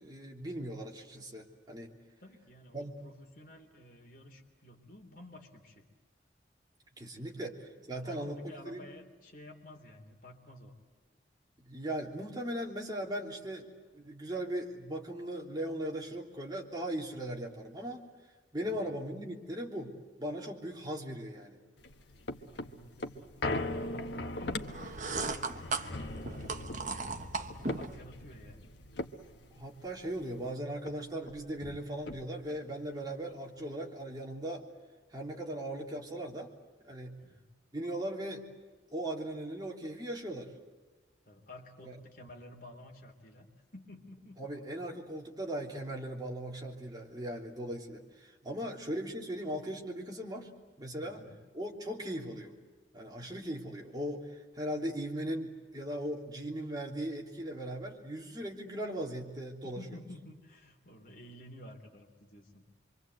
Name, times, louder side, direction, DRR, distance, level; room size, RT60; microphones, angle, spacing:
voice 1, 0.0-1.9 2.7-3.0 7.0-8.9 11.6-13.7 13.9-18.0 18.5-19.9 20.2-21.6 29.5-34.7 35.1-36.5 36.8-37.2 37.7-38.4 38.9-40.5 41.8-42.0 44.4-50.5 50.8-51.2 51.5-52.6 52.9-59.8, right 1 dB, 25° right, -1 dB, 3.3 m, -38 dB
voice 2, 2.2-5.9 7.2-7.4 7.9-10.7 18.6-18.8 22.4-26.2 26.6-28.7 37.2-37.4 41.2-43.5 43.7-44.4 51.0-51.4 59.6-62.6, left 1 dB, 50° left, 3 dB, 3.4 m, -52 dB
sound 1, 21.8-30.5 30.9-31.0 31.2-32.6 33.1-33.2, left 2 dB, 80° left, 1.4 m, -40 dB
sound 2, 24.7-28.0, right 4 dB, 45° right, 1.3 m, -37 dB
26.5 x 24.5 x 8.1 m, 1.4 s
head